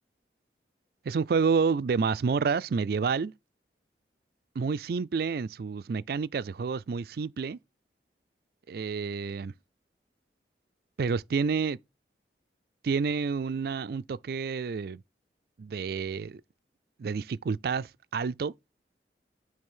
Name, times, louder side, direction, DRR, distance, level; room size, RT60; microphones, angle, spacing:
voice 1, 1.0-3.3 4.6-7.6 8.7-9.5 11.0-11.8 12.8-15.0 15.6-16.4 17.0-18.5, right 5 dB, 60° right, 0.4 m, -29 dB
8.8 x 3.3 x 5.4 m
head